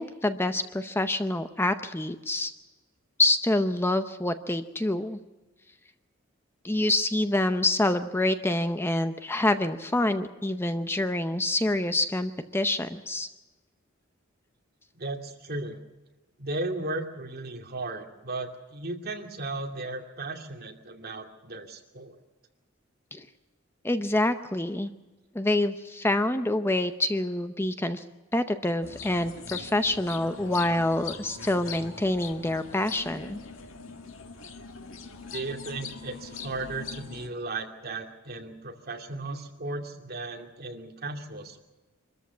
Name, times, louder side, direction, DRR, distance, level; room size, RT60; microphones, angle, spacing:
voice 1, 0.0-2.5 3.2-5.2 6.6-13.3 23.1-23.3 23.8-24.9 25.3-28.0 28.3-33.4, left 1 dB, 10° left, 9 dB, 0.7 m, -26 dB
voice 2, 14.9-15.8 16.4-22.1 35.3-41.7, right 2 dB, 50° right, 3 dB, 2.6 m, -36 dB
sound 1, 28.8-37.3, left 5 dB, 85° left, 1.9 m, -42 dB
25.0 x 14.0 x 8.3 m, 1.1 s
head